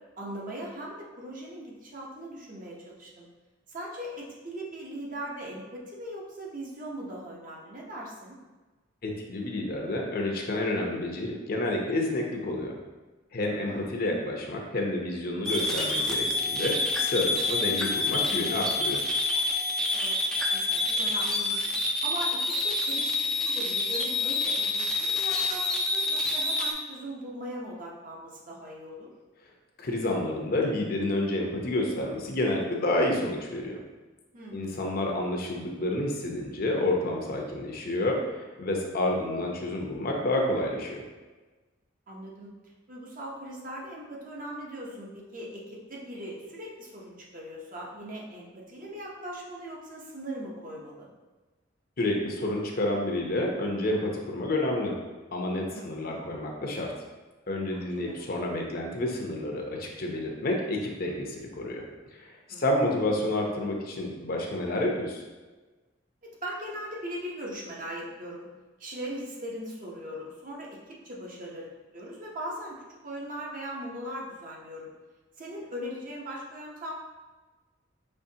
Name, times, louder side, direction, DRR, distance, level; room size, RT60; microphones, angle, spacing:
voice 1, 0.2-3.3 3.7-8.4 13.7-14.0 19.9-21.7 22.0-29.1 34.3-34.8 42.1-42.5 42.9-51.1 55.7-56.2 57.7-58.2 62.5-62.6 66.4-68.5 68.8-70.8 71.0-72.8 73.0-74.9 75.4-76.9, equal, 45° right, -3 dB, 0.9 m, -40 dB
voice 2, 9.0-12.7 13.3-19.0 29.8-33.8 34.5-41.0 52.0-55.0 55.3-56.9 57.5-61.8 62.1-65.2, left 1 dB, 50° left, 0 dB, 0.7 m, -29 dB
sound 1, 15.4-26.7, left 2 dB, 5° left, 0.4 m, -27 dB
5.5 x 3.1 x 2.8 m, 1.3 s
head